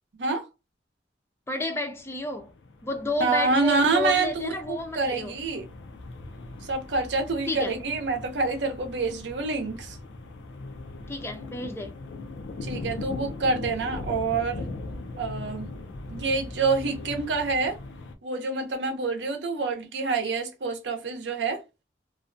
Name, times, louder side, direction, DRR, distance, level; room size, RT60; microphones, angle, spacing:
voice 1, 1.5-2.5 2.8-5.4 7.5-7.8 11.1-11.9, left 2 dB, 15° left, 0.4 m, -31 dB
sound 1, 2.3-18.1, left 2 dB, 90° left, 0.4 m, -40 dB
voice 2, 3.2-5.7 6.6-10.0 12.6-14.7 15.2-15.7 16.1-17.8 18.2-21.6, right 3 dB, 80° right, 0.6 m, -27 dB
2.4 x 2.1 x 2.5 m
head